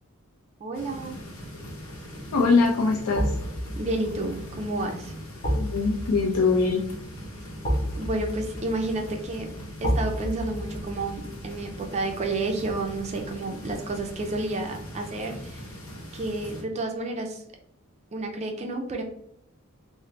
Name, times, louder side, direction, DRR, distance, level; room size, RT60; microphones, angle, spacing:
voice 1, 0.6-1.2 2.2-2.3 3.8-5.1 8.0-9.6 9.8-15.7 16.1-17.4 18.1-19.0, right 2 dB, 30° right, 3 dB, 0.4 m, -30 dB
sound 1, 0.7-16.6, equal, 70° left, 0.8 m, -41 dB
voice 2, 2.3-3.3 5.5-6.8, left 4 dB, 90° left, 0 dB, 0.5 m, -22 dB
sound 2, 3.1-14.1 14.5-14.6, equal, 40° left, 0.9 m, -33 dB
3.8 x 2.0 x 3.1 m, 0.74 s
head